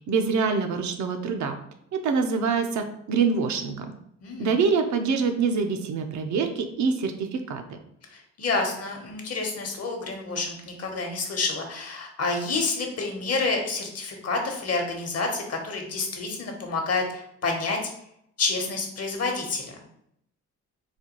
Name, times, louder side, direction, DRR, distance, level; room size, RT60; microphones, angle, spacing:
voice 1, 0.1-1.5 1.9-3.9 4.4-7.8, right 5 dB, 70° right, 6 dB, 0.6 m, -25 dB
voice 2, 4.2-4.5 8.1-17.8 18.4-19.7, left 3 dB, 55° left, 2 dB, 0.9 m, -29 dB
4.1 x 2.3 x 2.9 m, 0.73 s
cardioid pair, 90°, 30 cm